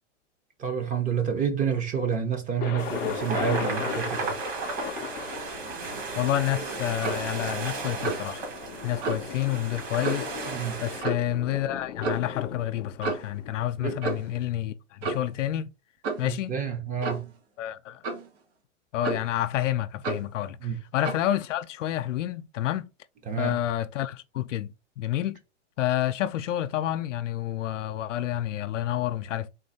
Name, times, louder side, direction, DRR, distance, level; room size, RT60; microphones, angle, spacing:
voice 1, 0.6-4.4 10.5-10.8 13.8-14.0 16.2-17.3 20.6-20.8 23.3-23.6, right 7 dB, 20° right, 0.9 m, -29 dB
Thunder, 2.6-14.4, left 9 dB, 25° left, 0.6 m, -38 dB
sound 1, 2.8-11.0, right 4 dB, 40° right, 1.8 m, -35 dB
voice 2, 6.2-8.4 8.8-10.3 10.8-15.7 16.2-16.6 17.6-18.0 18.9-22.9 23.4-25.4 25.8-29.5, left 12 dB, 75° left, 0.6 m, -29 dB
Clock, 7.0-7.3 8.0-8.3 9.0-9.2 10.0-10.3 11.0-11.3 12.0-12.3 13.0-13.3 14.0-14.4 15.0-15.3 16.0-16.3 17.0-17.3 18.0-18.3 19.0-19.4 20.0-20.3 21.0-21.3, right 3 dB, 65° right, 1.9 m, -31 dB
3.9 x 2.7 x 4.1 m
hypercardioid pair, 130°, 37 cm